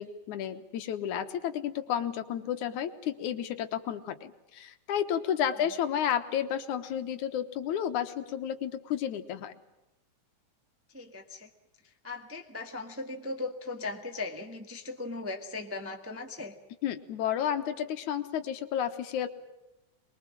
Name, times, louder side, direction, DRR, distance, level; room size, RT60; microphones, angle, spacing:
voice 1, 0.0-9.5 16.8-19.3, left 9 dB, 80° left, 9 dB, 2.7 m, -32 dB
voice 2, 10.9-11.5 11.8-16.6, left 3 dB, 10° right, 3 dB, 0.9 m, -38 dB
23.5 x 22.0 x 7.4 m, 0.96 s
omnidirectional pair, 3.4 m